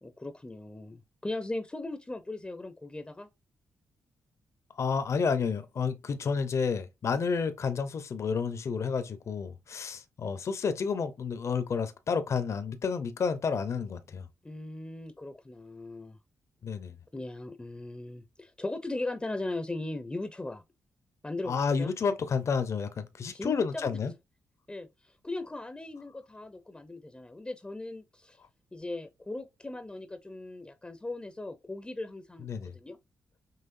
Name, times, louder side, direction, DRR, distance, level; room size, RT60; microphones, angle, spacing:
voice 1, 0.0-3.3 14.4-16.2 17.1-20.6 21.2-21.9 23.3-23.9 24.7-28.4 28.7-33.0, left 2 dB, 15° left, 0.6 m, -38 dB
voice 2, 4.8-14.3 16.6-16.9 21.5-24.1 32.4-32.7, left 5 dB, 55° left, 0.7 m, -30 dB
5.7 x 3.1 x 2.6 m
cardioid pair, 70°, 6 cm